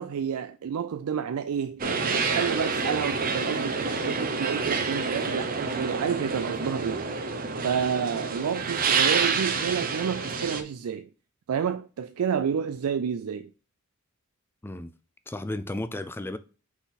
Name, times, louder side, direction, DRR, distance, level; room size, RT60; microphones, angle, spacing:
voice 1, 0.0-7.0 7.6-11.1 11.5-13.5, right 7 dB, 80° right, 0.4 m, -30 dB
sound 1, 1.8-10.6, right 4 dB, 40° right, 0.8 m, -28 dB
voice 2, 14.6-14.9 15.3-16.4, left 1 dB, 10° left, 0.4 m, -33 dB
5.8 x 4.0 x 4.1 m
head